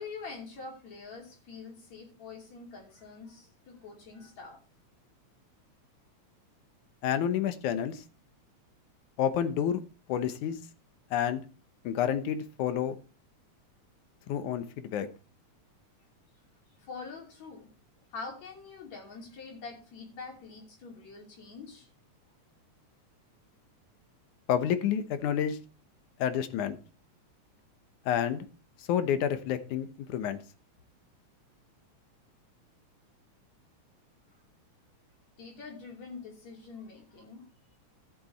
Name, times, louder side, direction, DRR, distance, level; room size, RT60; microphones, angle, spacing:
voice 1, 0.0-4.6 16.8-17.7 18.1-21.9 35.4-37.5, left 4 dB, 65° left, 0 dB, 4.1 m, -45 dB
voice 2, 7.0-8.0 9.2-9.8 10.1-10.6 11.1-11.4 11.8-13.0 14.3-15.1 24.5-25.6 26.2-26.8 28.1-28.5 28.9-30.4, left 9 dB, 85° left, 10 dB, 2.5 m, -29 dB
14.5 x 6.8 x 4.2 m, 0.34 s
omnidirectional pair, 3.4 m